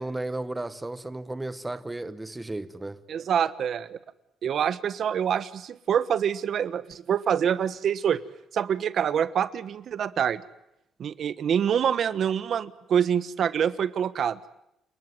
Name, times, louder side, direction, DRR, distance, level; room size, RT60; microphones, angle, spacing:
voice 1, 0.0-3.0, right 2 dB, 10° right, 1.1 m, -34 dB
voice 2, 3.1-4.0 4.4-8.2 8.5-10.4 11.0-14.4, right 8 dB, 50° right, 1.3 m, -26 dB
30.0 x 20.0 x 9.4 m
cardioid pair, 165°, 0 cm